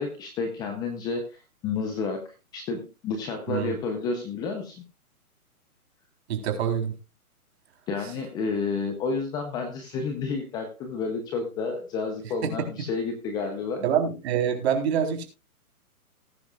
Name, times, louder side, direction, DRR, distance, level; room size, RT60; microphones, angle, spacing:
voice 1, 0.0-4.8 7.9-13.9, left 4 dB, 10° left, 5 dB, 0.7 m, -30 dB
voice 2, 6.3-6.9 12.4-12.5 13.8-15.2, right 8 dB, 45° right, 4 dB, 3.9 m, -25 dB
19.5 x 10.0 x 2.4 m, 0.30 s
hypercardioid pair, 145°, 45 cm